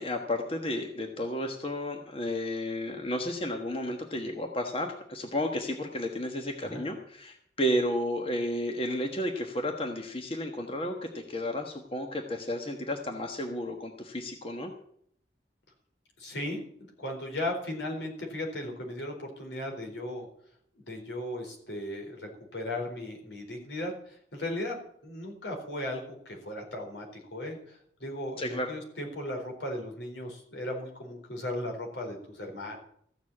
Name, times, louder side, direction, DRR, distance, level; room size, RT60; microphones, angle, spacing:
voice 1, 0.0-14.7 28.4-28.7, left 1 dB, 30° left, 4 dB, 1.3 m, -32 dB
voice 2, 16.2-20.3 20.9-32.8, left 1 dB, 80° left, 1 dB, 4.2 m, -37 dB
14.5 x 7.3 x 8.6 m, 0.66 s
head